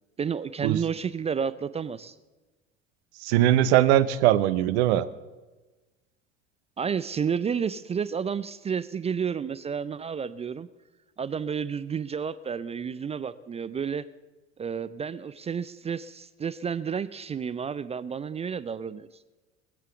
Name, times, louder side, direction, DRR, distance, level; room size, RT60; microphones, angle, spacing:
voice 1, 0.2-2.1 6.8-10.7 11.2-14.0 14.6-19.1, right 7 dB, 15° right, 15 dB, 0.4 m, -31 dB
voice 2, 3.2-5.1, right 12 dB, 60° right, 14 dB, 0.8 m, -21 dB
20.5 x 7.6 x 6.9 m, 1.2 s
figure-of-eight pair, 60°, 37 cm